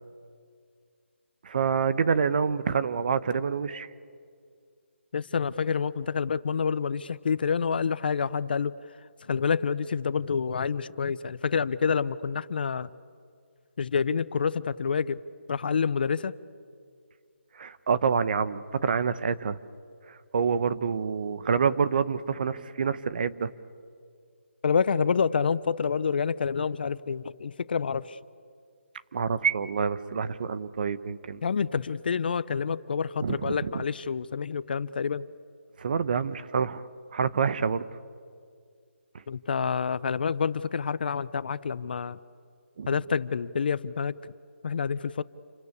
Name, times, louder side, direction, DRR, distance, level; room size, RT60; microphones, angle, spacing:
voice 1, 1.4-3.9 17.6-19.6 20.1-23.5 29.1-31.4 33.2-33.8 35.8-36.8 37.1-37.8 42.8-42.9, right 6 dB, 45° right, 14 dB, 1.0 m, -27 dB
voice 2, 5.1-8.7 9.2-12.9 13.8-15.2 15.5-16.3 24.6-28.2 31.4-35.3 39.3-42.2 42.9-44.2 44.6-45.2, left 6 dB, 45° left, 17 dB, 0.7 m, -28 dB
28.5 x 24.0 x 8.5 m, 2.2 s
hypercardioid pair, 165°, 7 cm